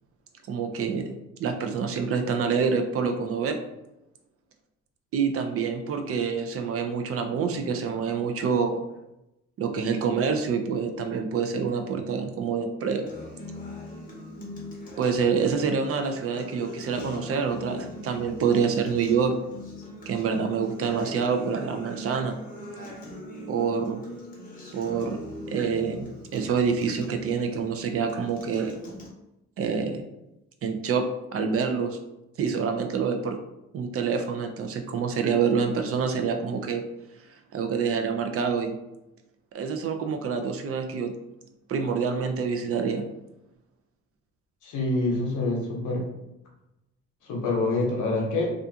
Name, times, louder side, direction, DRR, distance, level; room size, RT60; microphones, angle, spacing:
voice 1, 0.5-3.6 5.1-8.8 9.6-13.1 15.0-19.4 20.1-22.4 23.5-24.0 24.7-25.2 25.5-28.7 29.6-30.0 30.6-31.0 31.3-32.0 32.4-33.4 33.7-36.8 37.5-38.8 39.5-41.1 41.7-43.1, right 6 dB, 50° right, 6 dB, 0.4 m, -27 dB
Acoustic guitar, 13.1-29.1, left 1 dB, 30° left, 0.8 m, -41 dB
voice 2, 44.6-46.0 47.2-48.5, left 2 dB, 80° left, -1 dB, 0.8 m, -26 dB
2.4 x 2.3 x 2.6 m, 0.90 s
cardioid pair, 90°, 30 cm